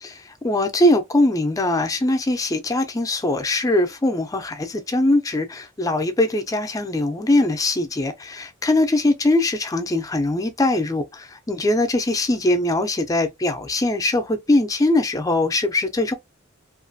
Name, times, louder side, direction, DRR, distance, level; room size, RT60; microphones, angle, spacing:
voice 1, 0.4-16.1, left 1 dB, 15° left, 0.4 m, -21 dB
2.4 x 2.2 x 2.5 m
head